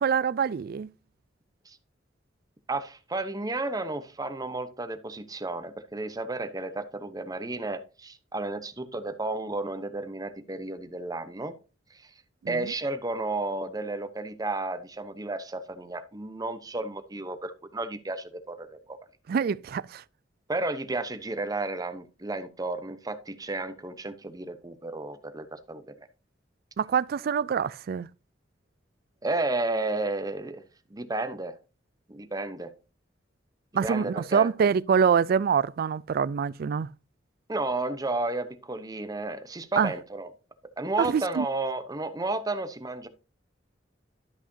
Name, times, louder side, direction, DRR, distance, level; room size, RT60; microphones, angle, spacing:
voice 1, 0.0-0.9 12.4-12.7 19.3-20.0 26.8-28.1 33.7-36.9 39.8-39.9 41.0-41.5, right 6 dB, 55° right, 0.3 m, -25 dB
voice 2, 2.7-11.5 12.0-12.1 12.5-19.0 20.5-25.8 29.2-30.6 30.9-31.6 32.1-32.7 33.7-34.5 37.5-40.3 40.8-43.1, right 2 dB, 20° right, 0.8 m, -32 dB
12.5 x 5.6 x 2.7 m
head